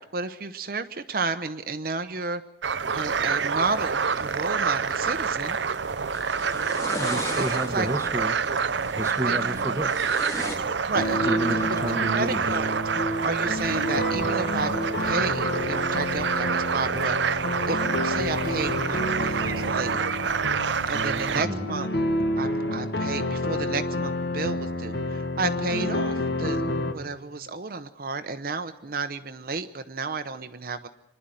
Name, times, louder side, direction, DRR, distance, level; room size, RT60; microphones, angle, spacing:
voice 1, 0.0-2.4 2.9-5.6 7.1-7.9 9.3-9.4 10.9-11.4 12.1-12.8 13.2-14.7 15.0-20.0 20.8-21.9 22.4-30.9, right 3 dB, 50° right, 9 dB, 0.9 m, -32 dB
sound 1, 2.6-21.5, right 6 dB, 75° right, 0.6 m, -27 dB
sound 2, 2.9-10.6, left 1 dB, 15° left, 2.5 m, -39 dB
voice 2, 6.9-8.4 8.9-10.2 11.2-12.4 12.9-13.1 21.3-21.7, right 1 dB, 15° right, 6 dB, 1.2 m, -31 dB
sound 3, 10.9-26.9, left 1 dB, 65° left, 1.9 m, -29 dB
25.5 x 11.0 x 9.2 m, 0.94 s
head